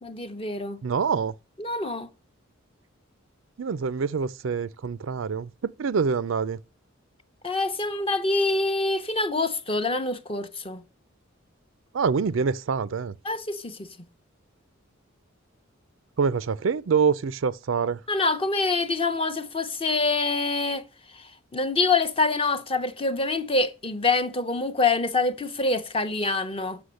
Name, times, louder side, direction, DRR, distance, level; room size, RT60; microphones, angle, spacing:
voice 1, 0.0-0.8 1.6-2.1 7.4-10.8 13.2-13.9 18.1-20.8 21.1-26.8, left 3 dB, 25° left, 0.8 m, -26 dB
voice 2, 0.8-1.3 3.6-6.6 11.9-13.1 16.2-18.0, right 5 dB, 70° right, 0.4 m, -25 dB
7.9 x 6.1 x 6.4 m
head